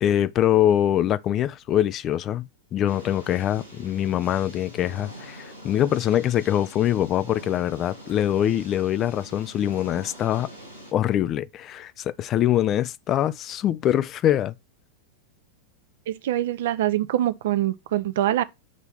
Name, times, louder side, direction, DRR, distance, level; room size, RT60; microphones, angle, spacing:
voice 1, 0.0-10.5 10.9-14.5, left 11 dB, 30° left, 0.4 m, -23 dB
sound 1, 2.9-10.9, equal, 90° left, 2.9 m, -44 dB
voice 2, 16.1-18.4, right 13 dB, 55° right, 0.6 m, -24 dB
7.3 x 3.4 x 5.7 m
figure-of-eight pair, 90°, 0 cm